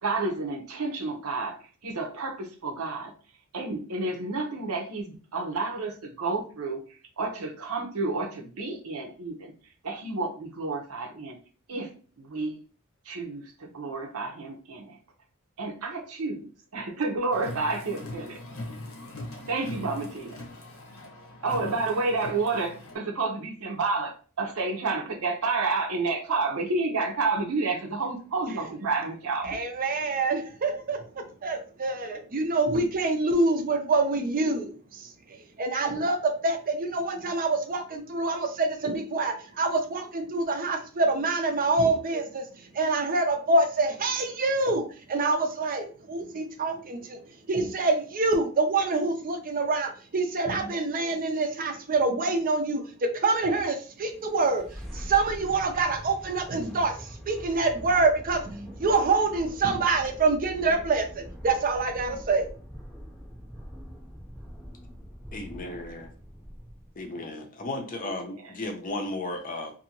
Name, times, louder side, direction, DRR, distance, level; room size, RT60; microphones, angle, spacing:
voice 1, 0.0-3.1 3.5-9.5 9.8-11.4 11.7-12.6 13.0-15.0 15.6-18.4 19.5-20.4 21.4-29.5 68.0-68.5, right 3 dB, 80° right, 2 dB, 0.7 m, -30 dB
Car, 17.3-23.0, left 1 dB, 70° left, 0.8 m, -41 dB
voice 2, 29.4-47.2 47.5-54.7 54.9-62.5, right 3 dB, 40° right, 5 dB, 0.5 m, -26 dB
sound 1, 53.9-67.0, equal, ahead, 0.8 m, -43 dB
voice 3, 65.3-66.1 67.0-69.7, left 2 dB, 40° left, 4 dB, 0.6 m, -34 dB
2.7 x 2.6 x 2.8 m, 0.39 s
head